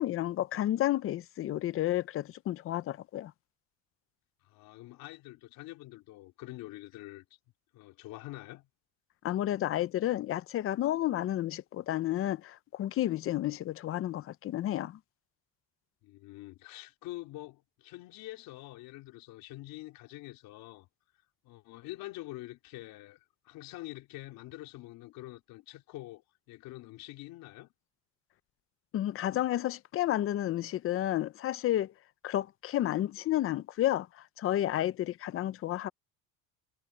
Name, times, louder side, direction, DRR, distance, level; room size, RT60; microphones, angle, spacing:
voice 1, 0.0-3.3 9.2-15.0 28.9-31.9 32.2-34.1 34.4-35.9, left 13 dB, 40° left, 0.6 m, -31 dB
voice 2, 4.4-7.3 7.7-8.7 16.0-20.9 21.4-27.7, left 18 dB, 70° left, 3.7 m, -46 dB
cardioid pair, 150°, 36 cm